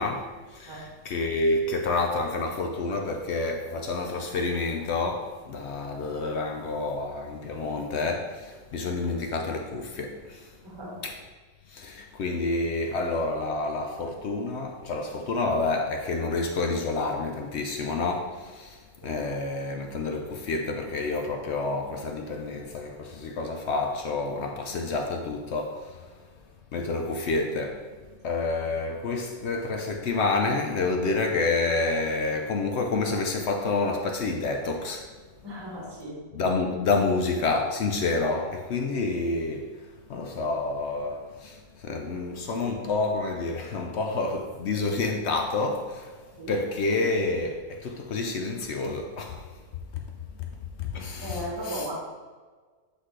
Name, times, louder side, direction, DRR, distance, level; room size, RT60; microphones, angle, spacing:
voice 1, 0.0-10.6 11.0-11.2 11.7-26.1 26.7-27.9 28.2-35.1 36.3-39.8 40.1-46.2 46.5-49.5 49.9-50.0 50.8-51.9, left 3 dB, 65° left, 3 dB, 0.7 m, -29 dB
voice 2, 10.6-11.0 19.0-19.2 35.4-36.2 46.4-46.6 51.2-51.9, right 1 dB, 15° right, -3 dB, 1.3 m, -36 dB
8.0 x 4.0 x 3.2 m, 1.4 s
omnidirectional pair, 1.7 m